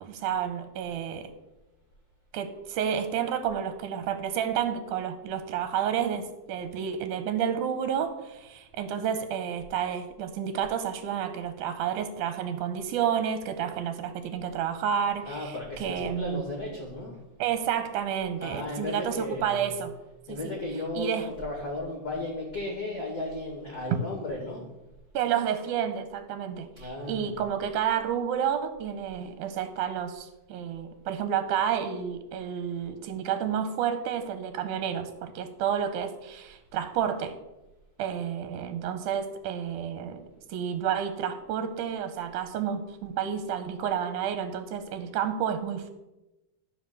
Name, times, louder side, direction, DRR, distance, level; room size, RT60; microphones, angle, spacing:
voice 1, 0.0-1.3 2.3-16.4 17.4-19.9 20.3-20.4 20.9-21.3 25.1-37.3 38.0-45.9, right 8 dB, 75° right, 10 dB, 2.1 m, -30 dB
voice 2, 15.3-17.2 18.4-19.8 20.3-24.7 26.7-27.4, left 2 dB, 35° left, -1 dB, 1.9 m, -35 dB
13.5 x 4.8 x 6.8 m, 1.0 s
omnidirectional pair, 3.7 m